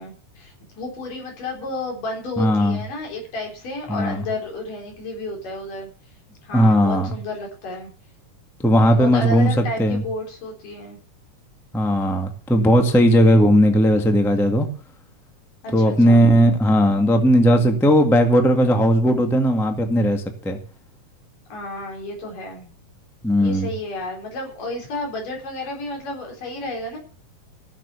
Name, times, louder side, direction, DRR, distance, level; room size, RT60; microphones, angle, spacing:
voice 1, 0.0-5.9 6.4-7.9 8.9-11.0 15.6-16.2 21.5-22.7 23.4-27.0, left 2 dB, 80° left, 0 dB, 5.8 m, -32 dB
voice 2, 2.4-2.8 3.9-4.2 6.5-7.1 8.6-9.5 9.8-10.0 11.7-14.7 15.7-20.6 23.2-23.7, equal, ahead, 4 dB, 0.8 m, -17 dB
15.0 x 7.5 x 7.0 m, 0.43 s
omnidirectional pair, 3.7 m